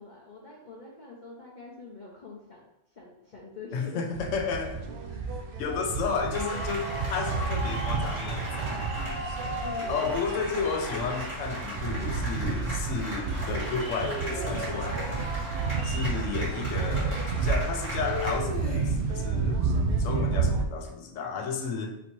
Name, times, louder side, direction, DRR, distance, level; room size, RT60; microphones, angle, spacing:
voice 1, 0.0-2.6 2.9-4.0 9.6-10.1 16.1-16.2, left 4 dB, 45° left, -4 dB, 0.7 m, -45 dB
voice 2, 3.7-4.9 5.6-8.9 9.9-15.2 15.8-19.6 20.0-22.0, left 5 dB, 80° left, 4 dB, 1.0 m, -32 dB
sound 1, 4.1-20.7, right 4 dB, 60° right, 0.6 m, -31 dB
sound 2, 6.3-18.3, right 1 dB, 80° right, 2.3 m, -37 dB
sound 3, 14.0-15.4 18.0-19.2, left 2 dB, 15° left, 0.8 m, -37 dB
4.2 x 2.8 x 4.4 m, 0.86 s
omnidirectional pair, 1.3 m